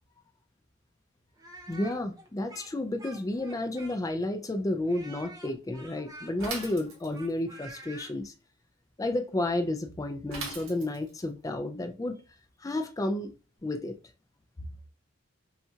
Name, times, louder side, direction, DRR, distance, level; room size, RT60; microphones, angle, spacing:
Speech, 1.4-4.3 4.9-8.1, right 2 dB, 20° right, 0.8 m, -48 dB
voice 1, 1.7-8.3 9.0-12.2 12.6-13.3 13.6-14.0, left 1 dB, 15° left, 0.3 m, -31 dB
Bicycle / Mechanisms, 6.4-7.4 10.3-11.2, right 4 dB, 90° right, 1.6 m, -39 dB
5.6 x 2.3 x 2.8 m
head